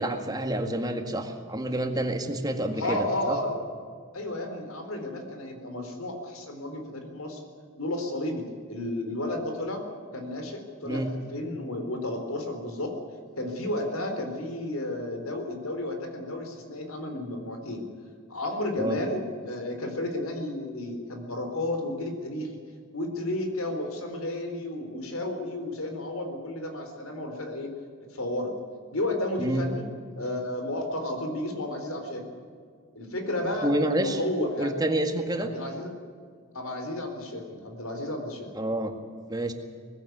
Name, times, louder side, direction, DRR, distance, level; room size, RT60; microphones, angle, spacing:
voice 1, 0.0-3.4 10.9-11.1 18.8-19.0 29.4-29.6 33.6-34.2 34.6-35.5 38.6-38.9 39.3-39.5, right 1 dB, 20° right, 5 dB, 1.9 m, -28 dB
voice 2, 2.7-3.5 4.1-7.4 7.8-9.8 10.1-13.0 13.4-17.8 18.3-22.6 22.9-27.7 28.0-28.5 28.9-29.8 30.2-32.2 32.9-34.7 35.4-35.9 36.5-38.5, left 1 dB, 85° left, 5 dB, 3.9 m, -32 dB
20.0 x 16.0 x 9.5 m, 2.1 s
head